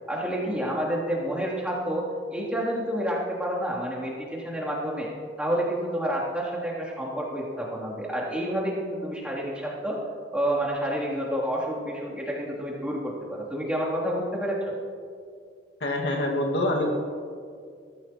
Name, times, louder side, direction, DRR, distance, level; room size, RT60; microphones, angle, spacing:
voice 1, 0.1-2.0 2.3-5.1 5.4-10.0 10.3-14.7, equal, 5° right, -6 dB, 3.3 m, -29 dB
voice 2, 15.8-16.9, left 1 dB, 75° left, 0 dB, 2.1 m, -25 dB
22.0 x 14.5 x 3.1 m, 2.2 s
head